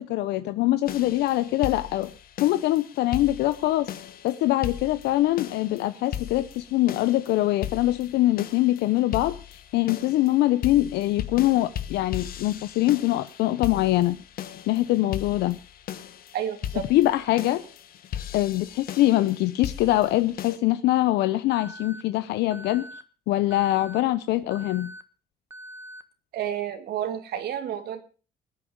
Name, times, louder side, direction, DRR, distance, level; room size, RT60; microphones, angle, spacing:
voice 1, 0.0-2.1 2.4-3.9 4.2-14.2 14.7-15.6 16.9-17.6 18.3-22.9 23.3-24.9, left 15 dB, 80° left, 0.7 m, -23 dB
sound 1, 0.9-20.6, left 10 dB, 60° left, 1.3 m, -38 dB
voice 2, 16.3-16.8 26.3-28.0, right 10 dB, 70° right, 2.2 m, -30 dB
Alarm, 21.5-22.0 22.5-23.0 23.5-24.0 24.5-25.0 25.5-26.0, equal, 15° right, 1.4 m, -42 dB
20.0 x 8.8 x 5.2 m
cardioid pair, 110°, 17 cm